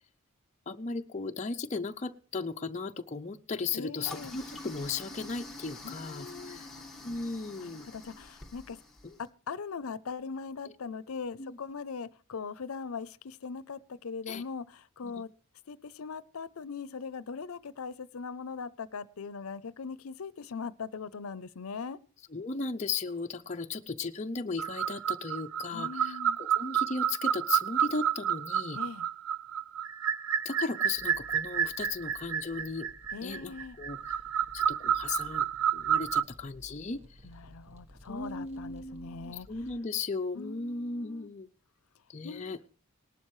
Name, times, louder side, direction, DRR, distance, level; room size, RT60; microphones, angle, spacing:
voice 1, 0.7-6.7 7.0-7.9 9.0-9.2 11.4-11.6 14.3-14.4 15.0-15.1 22.3-28.8 30.4-32.9 33.2-34.2 34.5-35.4 35.7-37.0 38.1-41.5 42.1-42.6, left 4 dB, 30° left, 0.6 m, -36 dB
voice 2, 3.7-4.4 5.8-6.6 7.6-8.8 9.2-15.3 15.7-22.0 25.7-26.4 28.7-29.1 33.1-33.8 37.2-39.5 40.3-41.3 42.2-42.6, left 5 dB, 85° left, 0.6 m, -40 dB
Toilet flush, 4.0-9.3, left 2 dB, ahead, 1.5 m, -46 dB
sound 1, 24.6-36.2, right 9 dB, 75° right, 0.6 m, -30 dB
sound 2, 30.9-39.8, equal, 30° right, 1.2 m, -55 dB
18.5 x 12.0 x 3.2 m
head